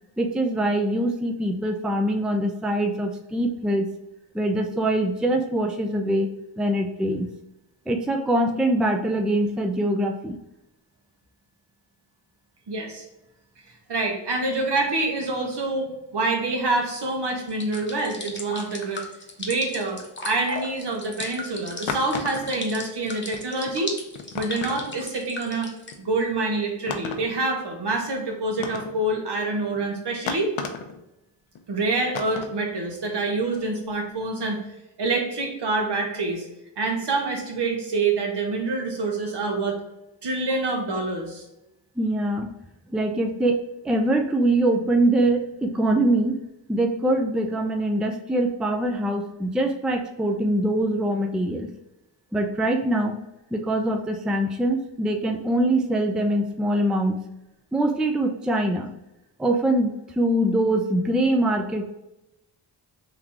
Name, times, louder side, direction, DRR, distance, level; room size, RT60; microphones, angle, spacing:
voice 1, 0.2-3.9 4.3-6.3 6.6-7.3 7.9-10.4 42.0-42.6 42.9-46.4 46.7-51.7 52.3-53.2 53.5-57.2 57.7-58.9 59.4-61.9, right 1 dB, ahead, 4 dB, 0.4 m, -23 dB
voice 2, 12.7-13.0 13.9-19.1 19.4-23.9 24.3-25.7 26.0-30.5 31.7-34.6 35.0-36.5 36.8-39.8 40.2-41.4, right 2 dB, 60° right, 1 dB, 1.3 m, -26 dB
sound 1, 17.5-25.9, left 2 dB, 25° left, 1.0 m, -36 dB
sound 2, 21.2-21.3 21.9-22.6 23.0-23.1 23.3-23.4 23.7-23.8 24.1-25.1 25.9-26.0 26.9-27.4 27.9-28.0 28.6-29.0 29.7-29.8 30.3-31.0 31.5-31.6 32.1-32.6, left 6 dB, 85° left, 0.7 m, -33 dB
3.7 x 2.9 x 3.5 m, 0.90 s
cardioid pair, 60°, 46 cm